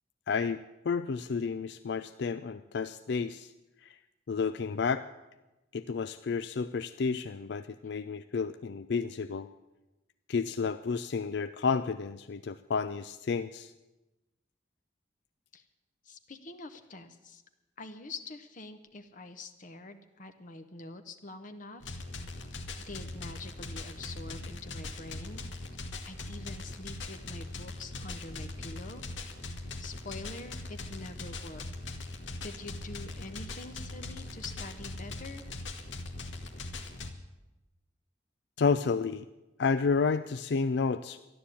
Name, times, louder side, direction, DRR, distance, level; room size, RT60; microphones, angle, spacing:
voice 1, 0.3-3.5 3.8-4.0 4.3-5.0 5.7-9.5 10.3-13.7 38.6-39.2 39.6-41.2, left 5 dB, 65° left, 11 dB, 0.4 m, -31 dB
voice 2, 16.0-17.4 17.8-22.0 22.9-25.4 26.0-29.0 29.8-31.6 32.4-35.5, left 2 dB, 45° left, 8 dB, 0.9 m, -45 dB
sound 1, 21.8-37.1, left 2 dB, 85° left, 1.5 m, -41 dB
13.0 x 11.5 x 8.4 m, 1.0 s
head